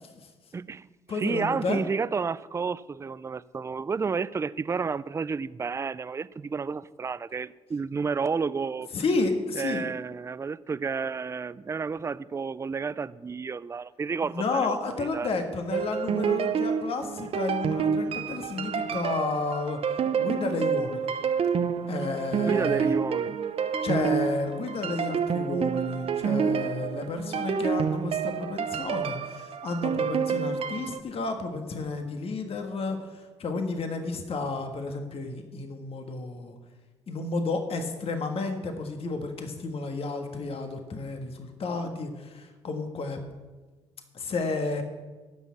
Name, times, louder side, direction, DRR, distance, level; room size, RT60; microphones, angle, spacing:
voice 1, 0.5-8.9 9.6-15.3 22.5-23.4, right 5 dB, 25° right, 17 dB, 0.4 m, -31 dB
voice 2, 1.1-1.8 8.9-9.8 14.3-19.8 20.2-21.1 21.9-22.9 23.8-36.6 37.1-43.2 44.1-44.8, left 3 dB, 50° left, 5 dB, 1.6 m, -31 dB
sound 1, 15.7-31.0, right 7 dB, 55° right, 0.8 m, -28 dB
11.0 x 6.2 x 8.5 m, 1.3 s
supercardioid pair, 60°, 12 cm